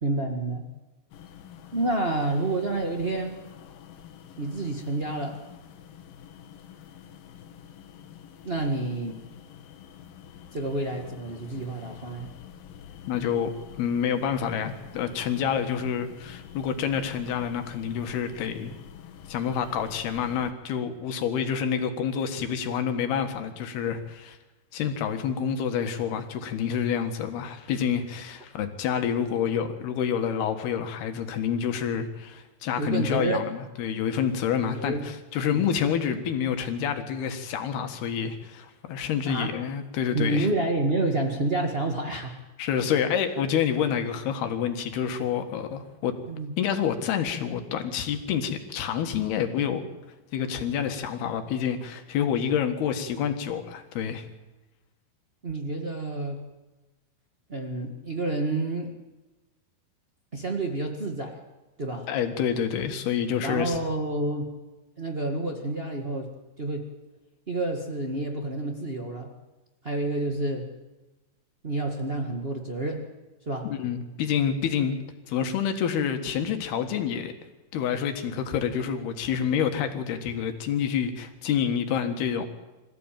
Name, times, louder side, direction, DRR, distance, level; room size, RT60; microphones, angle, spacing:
voice 1, 0.0-0.7 1.7-3.4 4.4-5.4 8.4-9.2 10.5-12.3 32.8-33.5 34.7-35.1 35.5-35.7 39.2-39.6 40.1-42.4 46.3-46.5 55.4-56.4 57.5-58.9 60.3-61.4 61.8-62.1 63.4-64.5 65.0-66.3 66.6-66.9 67.5-69.3 69.8-70.7 71.6-73.1 73.4-73.7, right 2 dB, 70° right, 2 dB, 0.5 m, -29 dB
sound 1, 1.1-20.5, left 9 dB, 70° left, 3.0 m, -47 dB
voice 2, 13.1-13.5 13.8-18.7 19.3-24.4 24.7-40.5 42.6-46.1 46.6-49.9 50.3-54.3 62.1-63.8 73.7-74.9 75.3-77.3 77.7-82.5, left 8 dB, 85° left, 7 dB, 3.7 m, -28 dB
26.0 x 15.5 x 9.1 m, 1.1 s
omnidirectional pair, 4.4 m